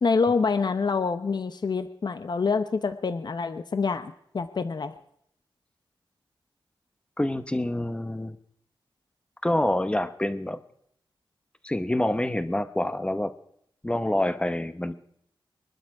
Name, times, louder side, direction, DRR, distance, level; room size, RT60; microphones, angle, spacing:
voice 1, 0.0-4.9, left 4 dB, 55° left, 10 dB, 0.9 m, -26 dB
voice 2, 7.2-8.4 9.4-10.6 11.6-13.3 13.8-14.9, left 1 dB, 10° left, 12 dB, 0.9 m, -27 dB
22.0 x 12.0 x 4.8 m, 0.72 s
wide cardioid pair, 120°, 9 cm